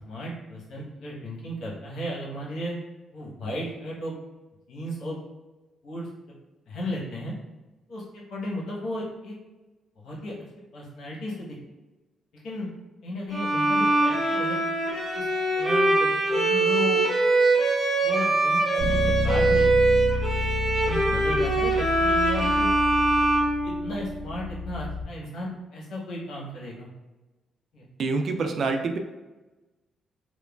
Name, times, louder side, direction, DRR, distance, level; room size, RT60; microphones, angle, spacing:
voice 1, 0.0-2.7 3.1-4.1 4.7-5.2 5.8-6.1 6.7-7.3 7.9-9.3 10.0-10.3 10.7-11.6 12.4-12.7 13.0-14.6 15.1-15.3 15.5-17.0 18.0-19.7 20.4-22.7 23.6-26.9 27.7-27.9 28.3-28.4, left 1 dB, 75° left, -4 dB, 0.8 m, -34 dB
Bowed string instrument, 13.3-24.3, right 2 dB, 5° right, 1.3 m, -23 dB
Bass guitar, 18.8-25.0, left 3 dB, 45° right, 1.0 m, -30 dB
voice 2, 28.0-29.0, right 4 dB, 60° right, 5 dB, 0.3 m, -26 dB
3.0 x 2.1 x 2.2 m, 1.1 s
cardioid pair, 70°, 0 cm